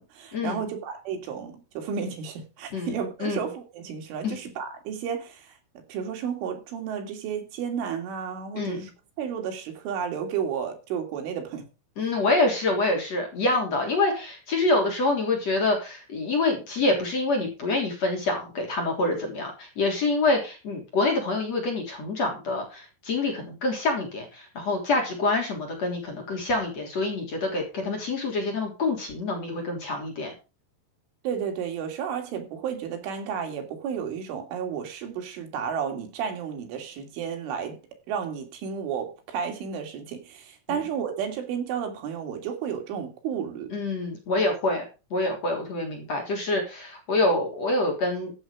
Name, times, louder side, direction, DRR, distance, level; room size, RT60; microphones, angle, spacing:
voice 1, 0.0-5.5 5.9-8.9 9.2-11.7 31.3-37.8 38.1-43.7, right 7 dB, 90° right, 5.2 m, -32 dB
voice 2, 12.0-30.3 40.7-40.8 43.7-44.9 45.1-48.4, left 2 dB, 40° left, 4.0 m, -26 dB
15.0 x 8.9 x 5.0 m
omnidirectional pair, 5.4 m